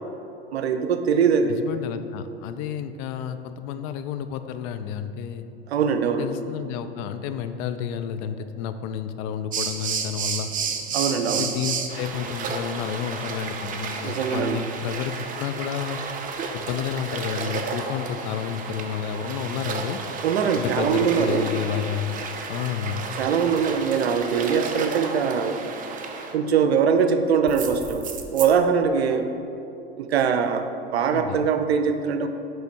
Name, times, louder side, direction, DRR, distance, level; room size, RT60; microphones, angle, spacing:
voice 1, 0.5-1.6 5.7-6.3 10.9-11.5 14.0-14.6 20.2-21.4 23.2-25.6 26.3-28.0 28.3-29.3 30.0-30.7 30.9-32.3, right 6 dB, 80° right, 8 dB, 0.6 m, -22 dB
voice 2, 1.5-5.5 6.2-10.5 11.3-16.0 16.5-20.0 20.6-22.2 22.5-23.1 31.1-31.5, left 8 dB, 45° left, 10 dB, 0.4 m, -31 dB
sound 1, 9.5-26.4 27.5-28.5, right 5 dB, 25° right, 0.6 m, -32 dB
9.0 x 3.3 x 4.1 m, 2.7 s
hypercardioid pair, 90°, 32 cm